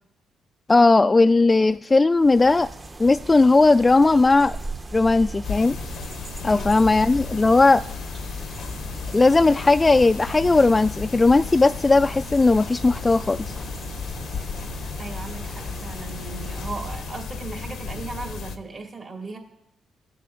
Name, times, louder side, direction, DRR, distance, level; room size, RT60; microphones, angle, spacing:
voice 1, 0.7-2.7 3.0-4.6 4.9-5.8 6.4-7.8 9.1-13.6, left 3 dB, 25° left, 8 dB, 0.3 m, -17 dB
sound 1, 2.1-17.2, right 2 dB, 30° right, 0.9 m, -38 dB
sound 2, 5.4-18.6, left 6 dB, 70° left, 0.7 m, -34 dB
voice 2, 15.0-19.4, right 3 dB, 45° right, 1 dB, 2.3 m, -37 dB
17.0 x 6.7 x 2.5 m, 0.84 s
hypercardioid pair, 45°, 0 cm